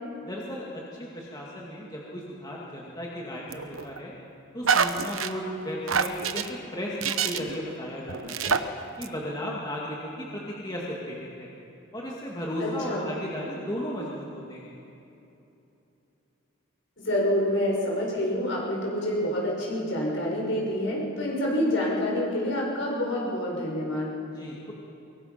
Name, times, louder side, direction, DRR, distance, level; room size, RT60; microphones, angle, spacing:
voice 1, 0.2-4.1 4.5-8.6 9.0-11.5 11.9-14.7 24.2-24.7, equal, 20° left, -4 dB, 2.2 m, -35 dB
sound 1, 3.5-4.0 4.6-5.3 5.9-6.5 7.0-7.6 8.1-8.6 9.0-9.1, right 6 dB, 70° right, 1.0 m, -26 dB
voice 2, 12.6-13.1 17.0-24.1, left 1 dB, 60° left, -2 dB, 6.3 m, -27 dB
23.5 x 23.0 x 5.9 m, 2.9 s
head